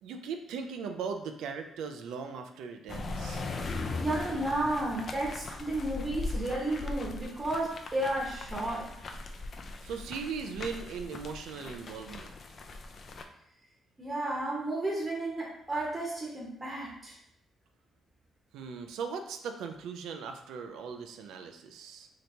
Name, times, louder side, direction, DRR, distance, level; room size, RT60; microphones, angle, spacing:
voice 1, 0.0-3.4 9.8-12.3 18.5-22.1, right 5 dB, 85° right, 6 dB, 0.3 m, -39 dB
sound 1, 2.9-13.2, left 3 dB, 45° left, 0.3 m, -39 dB
voice 2, 4.0-8.9 14.0-17.1, right 1 dB, 20° right, -3 dB, 0.8 m, -32 dB
2.9 x 2.7 x 3.2 m, 0.76 s
cardioid pair, 90°, 0 cm